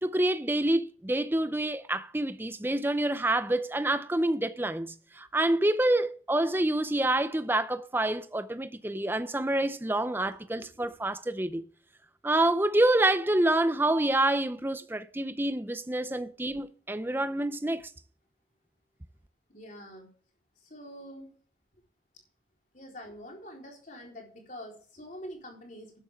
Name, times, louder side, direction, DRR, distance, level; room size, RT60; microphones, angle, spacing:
voice 1, 0.0-11.7 12.2-17.9, right 1 dB, 10° right, 0.5 m, -27 dB
voice 2, 10.3-10.9 19.5-20.1 20.6-21.3 22.7-25.9, equal, 40° left, 3.9 m, -46 dB
12.0 x 11.0 x 3.6 m
head